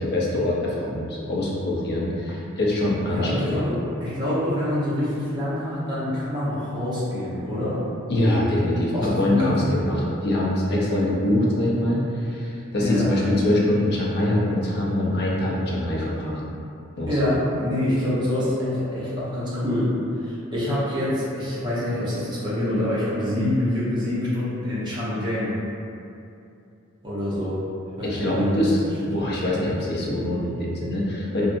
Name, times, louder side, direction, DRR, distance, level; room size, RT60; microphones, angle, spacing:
voice 1, 0.0-3.7 8.1-16.4 17.0-17.3 28.0-28.8 29.1-31.5, left 1 dB, 50° left, -5 dB, 0.6 m, -24 dB
voice 2, 3.1-7.8 8.9-9.7 12.8-13.1 17.1-19.9 20.2-25.6 27.0-27.6 28.0-28.9, left 1 dB, 20° right, -10 dB, 0.8 m, -26 dB
2.7 x 2.5 x 2.5 m, 2.6 s
head